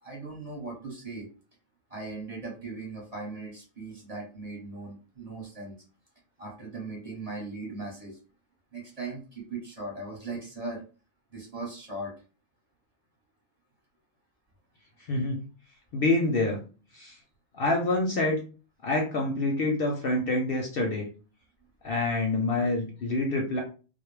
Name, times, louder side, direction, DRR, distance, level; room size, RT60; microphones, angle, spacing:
voice 1, 0.0-1.3 1.9-5.8 6.4-8.2 8.7-10.8 11.3-12.1, right 3 dB, 35° right, -3 dB, 1.0 m, -38 dB
voice 2, 15.0-15.4 15.9-16.6 16.9-17.2 17.5-18.4 18.8-21.1 21.8-23.6, left 2 dB, 60° left, 1 dB, 0.6 m, -27 dB
2.3 x 2.0 x 3.1 m, 0.36 s
omnidirectional pair, 1.2 m